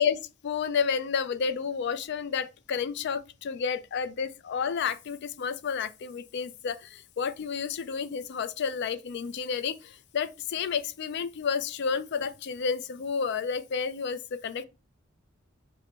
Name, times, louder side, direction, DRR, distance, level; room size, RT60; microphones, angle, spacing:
voice 1, 0.0-14.6, left 6 dB, 60° left, 0.4 m, -31 dB
5.1 x 2.1 x 4.2 m
head